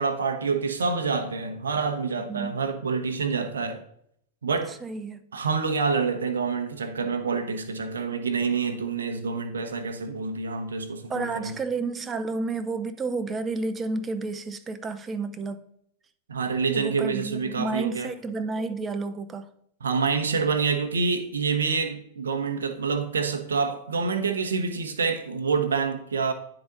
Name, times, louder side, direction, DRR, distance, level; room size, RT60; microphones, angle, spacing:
voice 1, 0.0-3.8 4.4-4.7 5.3-11.5 16.3-18.1 19.8-26.3, right 5 dB, 80° right, 0.9 m, -27 dB
voice 2, 4.7-5.2 11.1-15.6 16.7-19.5, right 3 dB, 20° right, 0.6 m, -31 dB
9.8 x 3.9 x 3.9 m
hypercardioid pair, 100°, 0 cm